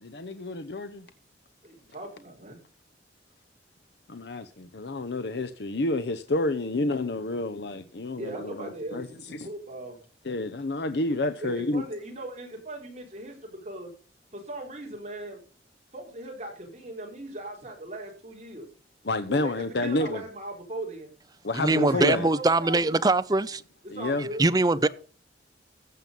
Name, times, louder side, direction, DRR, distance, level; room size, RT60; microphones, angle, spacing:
voice 1, 0.0-1.1 4.1-9.5 10.2-11.8 19.0-20.2 21.4-22.3 23.9-24.3, left 2 dB, 70° left, 0.8 m, -29 dB
voice 2, 1.6-2.6 8.2-10.0 11.4-13.9 14.3-15.4 15.9-18.7 19.3-21.1 21.7-23.0 23.8-24.4, right 1 dB, 40° right, 4.3 m, -38 dB
voice 3, 21.5-23.6 24.4-24.9, right 2 dB, 20° right, 0.5 m, -22 dB
15.0 x 7.6 x 5.3 m
head